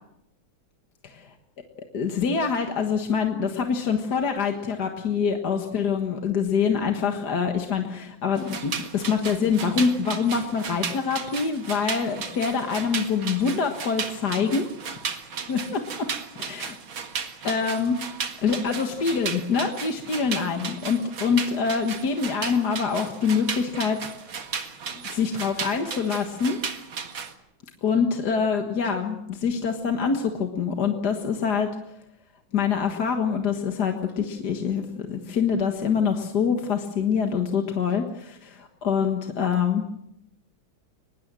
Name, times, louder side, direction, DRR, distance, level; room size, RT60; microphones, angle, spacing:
voice 1, 1.0-1.3 1.9-14.7 15.5-16.1 16.4-16.7 17.4-18.0 18.4-24.0 25.1-26.6 27.8-31.7 32.5-39.8, left 6 dB, 55° left, 4 dB, 2.0 m, -25 dB
sound 1, 8.4-27.3, right 6 dB, 75° right, 2.6 m, -35 dB
23.0 x 21.0 x 7.6 m, 0.78 s
omnidirectional pair, 2.2 m